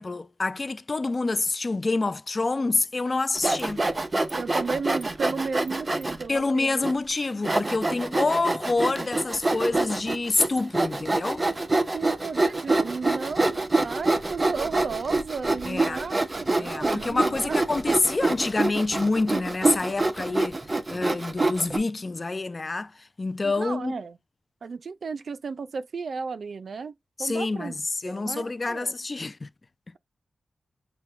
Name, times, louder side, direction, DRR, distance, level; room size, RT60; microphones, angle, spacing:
voice 1, 0.0-3.8 6.3-11.4 15.7-16.0 16.6-20.6 20.9-22.9 23.2-24.0 27.2-27.7 28.0-29.5, left 3 dB, 40° left, 0.3 m, -27 dB
Sawing, 3.4-6.2 6.8-6.9 7.4-21.8, right 2 dB, 35° right, 0.7 m, -26 dB
voice 2, 4.3-6.8 11.9-17.6 23.4-24.2 24.6-26.9 27.2-27.8 28.0-28.9, right 4 dB, 75° right, 0.4 m, -34 dB
6.1 x 2.2 x 3.2 m
cardioid pair, 60°, 0 cm